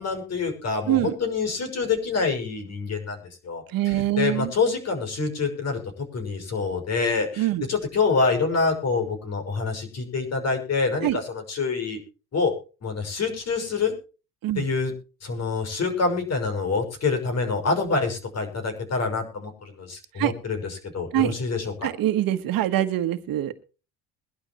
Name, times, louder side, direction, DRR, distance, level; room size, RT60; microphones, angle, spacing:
voice 1, 0.0-12.0 12.3-12.5 12.8-13.9 14.5-14.9 15.2-21.9, left 4 dB, 40° left, 5 dB, 6.1 m, -26 dB
voice 2, 3.7-4.5 7.4-7.6 11.0-11.2 14.4-14.6 20.2-20.3 21.1-21.3 21.8-23.6, right 13 dB, 60° right, 10 dB, 1.5 m, -24 dB
22.0 x 12.0 x 3.0 m, 0.34 s
cardioid pair, 130°, 39 cm